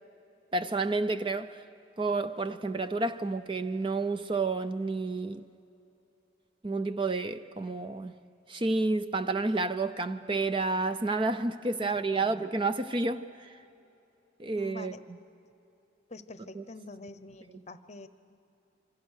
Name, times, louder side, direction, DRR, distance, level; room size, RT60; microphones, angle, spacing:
voice 1, 0.5-1.6 2.0-5.4 6.6-8.2 8.5-13.6 14.4-14.9 16.5-16.6, right 3 dB, 25° right, 0.5 m, -30 dB
voice 2, 11.8-12.5 14.6-15.0 16.1-18.1, left 2 dB, 35° left, 0.8 m, -46 dB
27.0 x 24.5 x 6.5 m
head